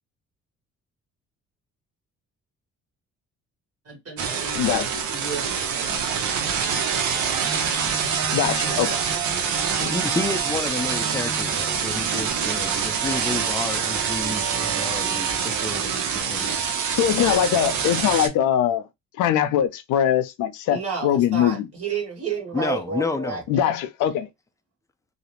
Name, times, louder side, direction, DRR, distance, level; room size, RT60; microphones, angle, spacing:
voice 1, 3.8-4.7 5.1-6.2 20.7-23.7, right 5 dB, 50° right, 1.2 m, -32 dB
sound 1, 4.2-18.3, right 6 dB, 75° right, 0.7 m, -25 dB
voice 2, 4.5-5.1 8.3-9.0 9.8-10.0 17.0-18.8 19.2-21.7 23.5-24.3, left 10 dB, 80° left, 0.5 m, -22 dB
voice 3, 9.9-16.7 22.5-23.4, left 3 dB, 10° left, 0.4 m, -30 dB
2.4 x 2.0 x 2.9 m
cardioid pair, 90°, 30 cm